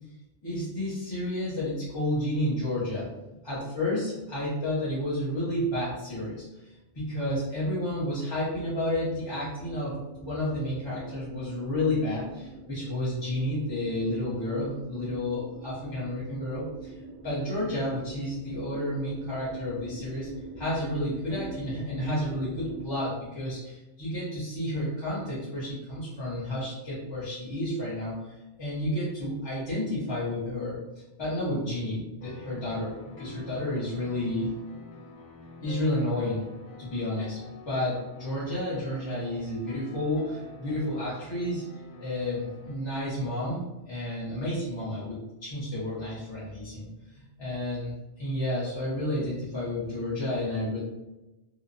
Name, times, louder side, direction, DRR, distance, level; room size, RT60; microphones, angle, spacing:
voice 1, 0.4-3.1 3.4-16.9 17.2-20.3 20.6-30.8 31.2-34.5 35.6-36.4 36.8-37.4 37.7-41.6 42.0-43.6 43.9-50.8, left 1 dB, 30° left, -9 dB, 0.6 m, -31 dB
sound 1, 9.5-22.8, right 2 dB, 80° right, 1.1 m, -44 dB
sound 2, 32.2-42.8, left 2 dB, 85° left, 0.9 m, -47 dB
2.8 x 2.0 x 2.5 m, 1.0 s
omnidirectional pair, 1.2 m